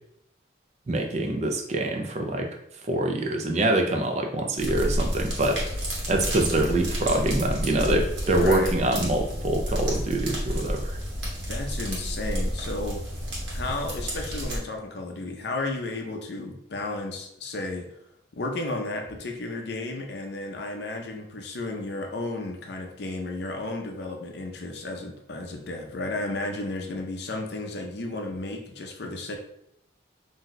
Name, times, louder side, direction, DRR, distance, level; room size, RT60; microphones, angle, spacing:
voice 1, 0.9-2.5 2.9-5.6 6.1-11.0, right 1 dB, 35° right, 3 dB, 0.4 m, -25 dB
sound 1, 4.6-14.6, equal, 80° right, 1.2 m, -30 dB
voice 2, 8.4-8.7 11.5-13.0 13.5-17.9 18.3-29.4, left 2 dB, 65° left, 2 dB, 0.5 m, -33 dB
2.7 x 2.2 x 3.9 m, 0.77 s
head